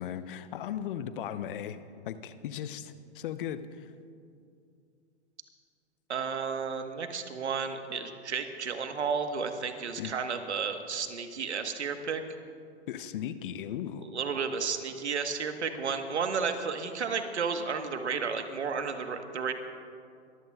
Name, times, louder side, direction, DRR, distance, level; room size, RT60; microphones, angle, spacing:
voice 1, 0.0-1.8 2.0-3.9 10.0-10.1 12.9-14.1, left 9 dB, 50° left, 12 dB, 0.8 m, -37 dB
voice 2, 6.1-12.2 14.1-19.5, right 5 dB, 80° right, 7 dB, 1.4 m, -32 dB
22.5 x 15.0 x 2.3 m, 2.4 s
hypercardioid pair, 120°, 33 cm